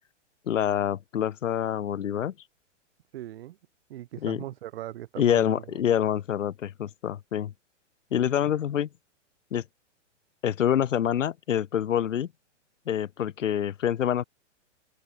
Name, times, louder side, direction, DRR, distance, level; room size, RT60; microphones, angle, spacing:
voice 1, 0.5-2.3 4.2-4.4 5.2-7.5 8.1-8.9 9.5-9.6 10.4-12.3 12.9-14.2, left 9 dB, 90° left, 1.4 m, -26 dB
voice 2, 3.1-3.6 3.9-5.7, right 14 dB, 50° right, 5.9 m, -39 dB
hypercardioid pair, 155°, 37 cm